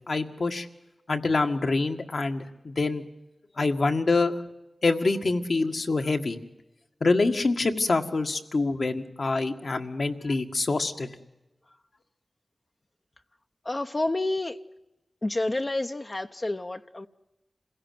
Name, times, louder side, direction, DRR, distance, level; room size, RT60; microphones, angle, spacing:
voice 1, 0.1-0.7 1.1-3.0 3.6-4.4 4.8-6.4 7.0-11.1, left 3 dB, 70° left, 1.8 m, -25 dB
voice 2, 13.6-14.6 15.2-17.1, left 2 dB, 40° left, 0.8 m, -29 dB
27.0 x 16.5 x 9.4 m
cardioid pair, 40°, 0 cm